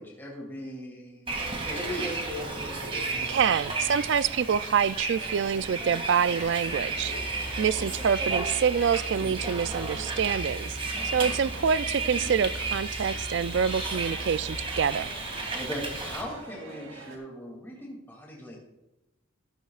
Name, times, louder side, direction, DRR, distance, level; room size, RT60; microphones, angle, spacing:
voice 1, 0.0-2.1 7.3-7.9 10.9-11.5 15.5-18.6, equal, 10° left, 2.6 m, -40 dB
Bus, 1.3-16.2, right 3 dB, 25° right, 2.3 m, -33 dB
sound 1, 1.7-17.2, right 2 dB, 90° right, 2.9 m, -46 dB
voice 2, 3.3-10.8 11.1-15.1, right 7 dB, 60° right, 0.3 m, -26 dB
sound 2, 6.9-14.9, equal, 35° left, 0.8 m, -41 dB
13.5 x 13.5 x 2.4 m
head